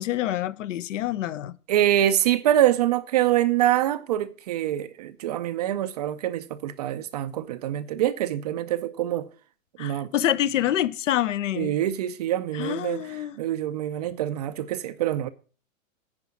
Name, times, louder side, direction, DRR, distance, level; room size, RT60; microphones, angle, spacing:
voice 1, 0.0-1.5 9.8-11.7 12.5-13.4, left 12 dB, 70° left, 0.7 m, -26 dB
voice 2, 1.7-9.3 9.8-10.1 11.6-13.0 13.4-15.3, right 12 dB, 30° right, 0.4 m, -25 dB
9.7 x 4.9 x 7.2 m
hypercardioid pair, 140°, 40 cm